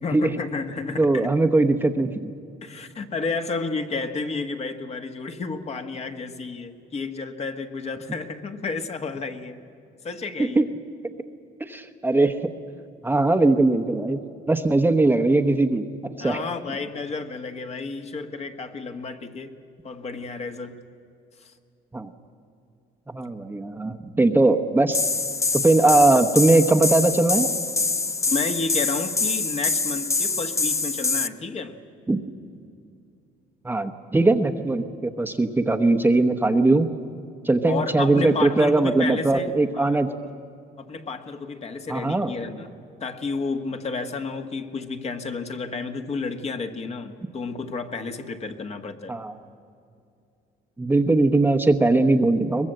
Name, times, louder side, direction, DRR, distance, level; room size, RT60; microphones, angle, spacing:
voice 1, 0.0-1.3 2.6-9.6 10.0-10.6 16.2-19.5 19.8-20.8 21.4-21.5 28.3-31.8 37.7-39.5 39.7-39.9 40.8-42.7 43.0-49.1, left 4 dB, 40° left, 6 dB, 1.5 m, -31 dB
voice 2, 1.0-2.3 10.4-10.7 11.6-12.4 13.0-14.2 14.5-15.9 16.2-16.4 21.9-22.1 23.1-25.0 25.5-27.5 32.1-32.2 33.6-36.9 37.4-40.1 41.9-42.3 49.1-49.4 50.8-52.7, right 2 dB, 10° right, 5 dB, 1.0 m, -20 dB
sound 1, 24.9-31.3, left 3 dB, 15° left, 0.6 m, -25 dB
22.5 x 21.0 x 7.8 m, 2.6 s
cardioid pair, 110°, 17 cm